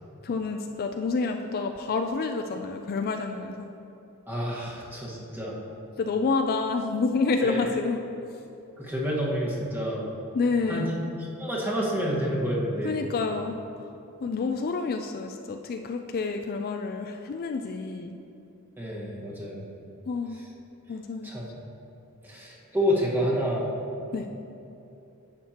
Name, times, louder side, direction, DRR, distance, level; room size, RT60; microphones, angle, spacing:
voice 1, 0.2-3.7 6.0-8.0 10.3-11.0 12.8-13.6 14.2-18.2 20.1-20.4 20.9-21.3 24.1-24.3, left 4 dB, 45° left, 5 dB, 0.3 m, -28 dB
voice 2, 4.3-5.6 7.4-7.7 8.8-10.1 10.7-10.9 11.4-13.0 18.8-19.6 21.2-21.5 22.2-23.7, equal, 10° right, -5 dB, 1.5 m, -28 dB
10.5 x 7.4 x 2.9 m, 2.8 s
head